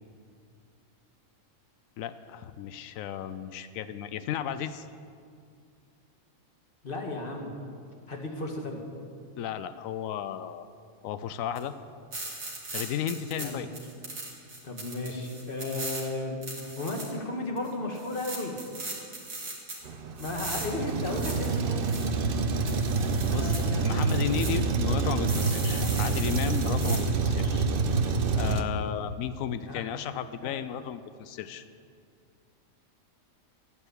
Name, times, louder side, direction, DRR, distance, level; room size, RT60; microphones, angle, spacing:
voice 1, 2.0-4.9 9.4-10.7 11.0-11.7 12.7-13.7 23.3-23.6 23.8-27.6 28.3-31.6, left 9 dB, 85° left, 12 dB, 1.0 m, -34 dB
voice 2, 6.8-7.5 8.1-8.8 13.4-13.6 14.6-18.5 20.2-21.9 23.2-24.1 29.6-29.8 30.4-30.6, left 2 dB, 40° left, 2 dB, 1.9 m, -34 dB
sound 1, 11.5-11.6 12.1-13.4 13.7-16.0 16.4-17.0 17.6-17.7 17.9-19.8 20.2-22.0 22.7-23.6 24.1-24.5 25.3-27.0, right 2 dB, 85° right, 2.9 m, -38 dB
Truck, 19.8-28.6, right 4 dB, 50° right, 0.8 m, -27 dB
12.5 x 9.1 x 8.1 m, 2.3 s
omnidirectional pair, 1.4 m